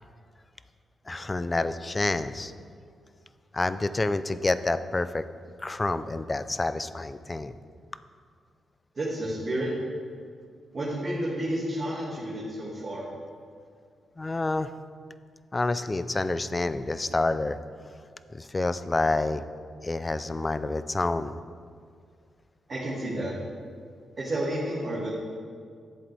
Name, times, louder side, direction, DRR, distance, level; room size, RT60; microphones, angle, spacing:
voice 1, 1.1-2.5 3.5-5.2 5.6-7.5 14.2-14.7 15.5-17.6 18.3-19.4 19.8-21.4, left 2 dB, 25° left, 13 dB, 0.4 m, -28 dB
voice 2, 9.0-9.7 10.7-13.1 22.7-23.3 24.2-25.1, right 1 dB, 45° right, -6 dB, 2.0 m, -30 dB
11.5 x 7.6 x 3.4 m, 2.1 s
cardioid pair, 70°, 0 cm